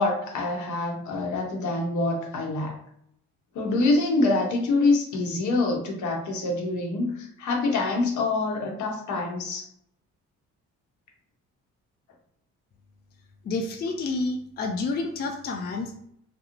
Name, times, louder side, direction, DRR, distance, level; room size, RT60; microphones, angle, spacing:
voice 1, 0.0-2.8 3.5-9.7, left 2 dB, 75° left, 1 dB, 0.8 m, -25 dB
voice 2, 13.4-16.1, left 3 dB, 35° left, 3 dB, 0.4 m, -29 dB
2.9 x 2.0 x 2.4 m, 0.70 s
cardioid pair, 90°, 30 cm